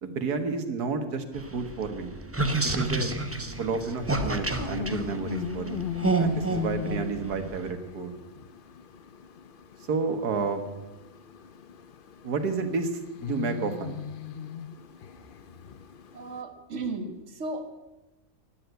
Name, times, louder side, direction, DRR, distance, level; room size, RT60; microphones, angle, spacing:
voice 1, 0.0-2.1 2.6-3.1 3.6-5.9 6.2-8.1 9.9-10.7 12.2-12.9 13.2-14.0, right 4 dB, 85° right, 8 dB, 1.9 m, -30 dB
sound 1, 1.3-7.7, right 2 dB, 15° right, 0.6 m, -30 dB
sound 2, 2.9-16.4, left 8 dB, 50° left, 0.6 m, -39 dB
voice 2, 16.1-17.6, right 3 dB, 50° right, 5 dB, 1.8 m, -35 dB
12.5 x 10.5 x 8.1 m, 1.0 s
omnidirectional pair, 1.6 m